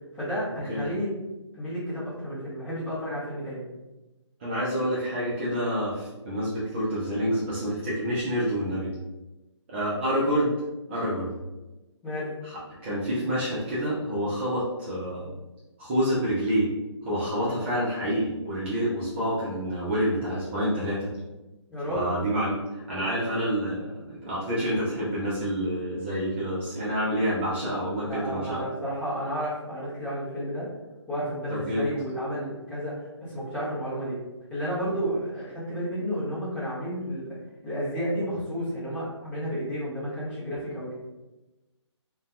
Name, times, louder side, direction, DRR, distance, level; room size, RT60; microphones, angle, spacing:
voice 1, 0.1-1.1 1.5-3.6 12.0-12.3 21.7-22.1 28.0-30.7 31.1-34.2 34.5-37.4 37.6-40.9, equal, 10° left, -11 dB, 0.8 m, -31 dB
voice 2, 4.4-8.9 9.7-10.6 10.9-11.3 12.4-15.3 15.8-16.7 17.0-21.1 21.9-28.6 31.5-31.9, equal, 25° right, -8 dB, 0.5 m, -28 dB
2.5 x 2.2 x 2.3 m, 1.1 s
figure-of-eight pair, 150°, 15 cm